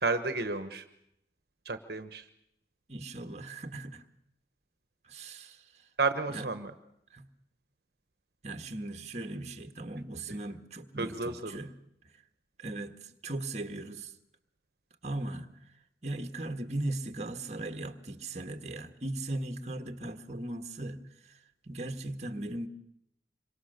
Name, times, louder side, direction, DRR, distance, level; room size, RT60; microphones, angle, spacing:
voice 1, 0.0-0.8 1.6-2.3 6.0-6.7 11.0-11.6, right 3 dB, 60° right, 1.3 m, -31 dB
voice 2, 2.9-4.0 5.1-5.6 6.3-6.4 7.1-7.3 8.4-11.7 12.6-14.1 15.0-15.5 16.0-21.0 21.6-22.7, right 2 dB, 40° right, 1.6 m, -38 dB
26.5 x 24.0 x 6.7 m
head